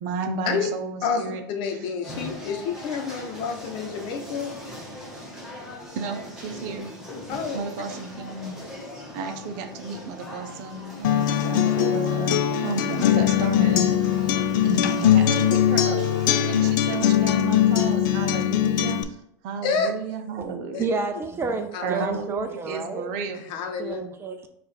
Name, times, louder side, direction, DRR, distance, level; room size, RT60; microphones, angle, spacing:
voice 1, 0.0-1.4 1.7-1.9 5.9-6.9 7.5-8.5 9.1-14.1 14.6-16.0 16.3-19.2 19.4-20.8 21.8-23.5, right 5 dB, 60° right, 6 dB, 0.7 m, -32 dB
voice 2, 1.0-4.5 7.3-7.6 19.6-19.9 20.7-20.8 21.7-22.1 23.5-24.0, left 5 dB, 50° left, 5 dB, 0.9 m, -29 dB
sound 1, 2.0-16.7, left 1 dB, 5° right, 1.3 m, -39 dB
Acoustic guitar, 11.0-19.0, left 10 dB, 75° left, 0.4 m, -21 dB
voice 3, 20.8-23.1 23.8-24.5, right 4 dB, 25° right, 7 dB, 0.5 m, -29 dB
4.8 x 2.5 x 4.3 m, 0.73 s
supercardioid pair, 115°, 10 cm